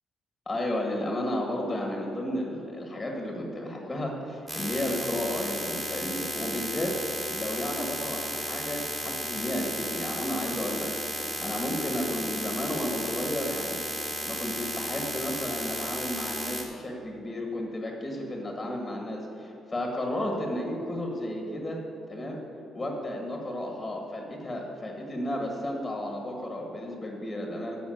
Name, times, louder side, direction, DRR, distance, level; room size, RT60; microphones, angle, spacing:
voice 1, 0.4-7.0 7.3-13.8 14.2-21.8 22.1-22.4 22.7-27.8, left 1 dB, 15° left, 0 dB, 1.7 m, -33 dB
sound 1, 4.5-16.6, right 1 dB, 20° right, 3.0 m, -34 dB
14.0 x 5.8 x 7.9 m, 2.9 s
cardioid pair, 125°, 0 cm